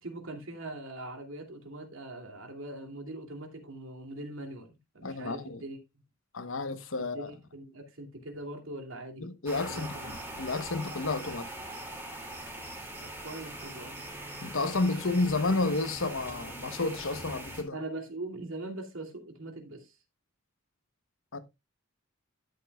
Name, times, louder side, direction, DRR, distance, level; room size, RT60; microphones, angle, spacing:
voice 1, 0.0-5.8 7.0-9.2 9.7-10.1 13.0-13.9 17.7-20.0, right 2 dB, 75° right, 2.7 m, -42 dB
voice 2, 5.0-5.6 6.3-7.3 9.2-9.9 10.4-11.5 14.4-17.8 21.3-21.4, left 3 dB, 70° left, 1.1 m, -31 dB
sound 1, 9.5-17.6, right 1 dB, 10° right, 2.4 m, -42 dB
12.5 x 8.6 x 2.3 m
head